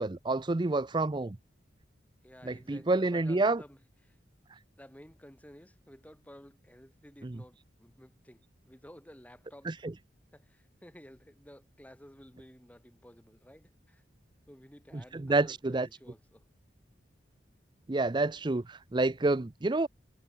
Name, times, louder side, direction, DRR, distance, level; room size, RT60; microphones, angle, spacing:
voice 1, 0.0-1.4 2.4-3.6 7.2-7.4 9.7-9.9 14.9-15.9 17.9-19.9, right 2 dB, 25° right, 0.5 m, -29 dB
voice 2, 2.2-3.8 4.0-4.2 4.8-9.7 10.3-14.0 14.5-16.4, equal, 10° left, 3.2 m, -54 dB
head